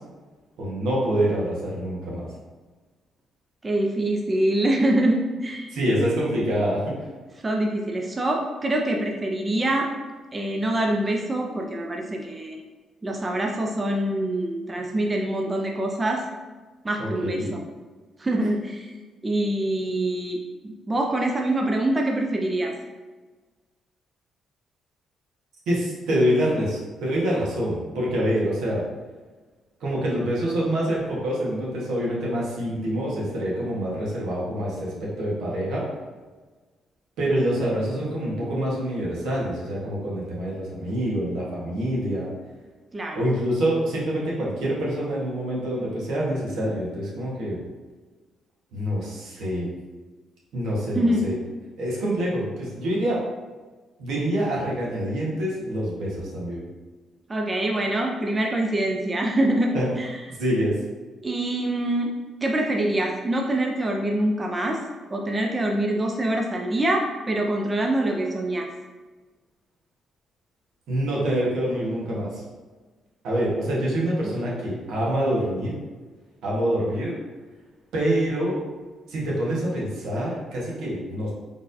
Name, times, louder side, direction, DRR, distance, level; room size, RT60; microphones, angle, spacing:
voice 1, 0.6-2.3 5.7-6.9 17.0-17.5 25.7-28.8 29.8-35.8 37.2-42.3 43.1-47.6 48.7-49.8 50.5-51.3 51.8-53.2 54.0-56.6 59.7-59.9 60.4-60.8 70.9-72.4 73.2-75.7 76.4-77.1 77.9-78.6 79.1-81.3, equal, 80° right, -5 dB, 1.3 m, -26 dB
voice 2, 3.6-5.7 7.4-9.9 10.3-12.6 13.0-16.3 16.8-17.6 18.2-18.9 19.2-22.7 42.9-43.3 50.9-51.3 57.3-60.2 61.2-64.8 65.1-68.7 74.2-74.6, right 1 dB, 25° right, 1 dB, 0.4 m, -25 dB
4.3 x 3.4 x 2.6 m, 1.3 s
cardioid pair, 90°, 0 cm